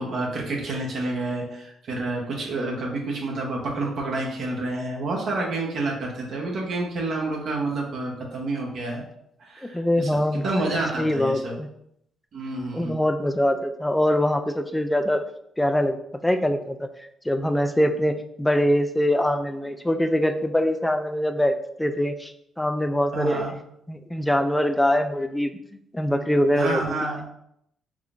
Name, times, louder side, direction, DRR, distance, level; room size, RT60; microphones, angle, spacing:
voice 1, 0.0-9.0 9.4-11.6 12.3-12.9 23.1-23.5 26.6-27.2, right 2 dB, 60° right, -1 dB, 0.8 m, -29 dB
voice 2, 9.6-10.5 11.0-11.7 12.7-15.2 15.6-16.0 16.2-16.9 17.3-22.3 22.6-23.4 23.9-25.6 25.9-26.8, left 1 dB, 10° left, 8 dB, 0.3 m, -23 dB
3.6 x 3.3 x 2.5 m, 0.75 s
cardioid pair, 90°, 0 cm